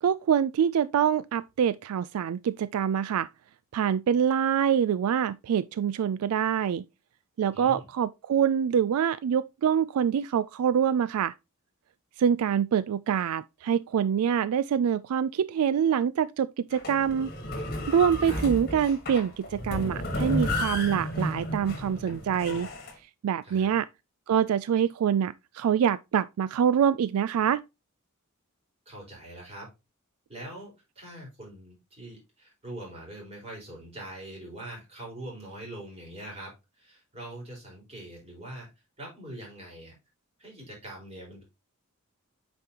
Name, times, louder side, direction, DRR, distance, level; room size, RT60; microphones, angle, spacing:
voice 1, 0.0-3.3 3.7-6.8 7.4-11.3 12.2-17.3 17.9-22.7 23.2-23.9 24.3-27.6, right 8 dB, 80° right, 0.3 m, -25 dB
voice 2, 7.5-7.9 18.2-18.4 23.4-23.8 28.9-29.7 30.3-38.7 39.0-39.9 40.4-41.4, right 1 dB, 30° right, 4.4 m, -43 dB
sound 1, 16.7-22.9, left 1 dB, 40° left, 1.5 m, -32 dB
8.0 x 5.3 x 2.9 m
head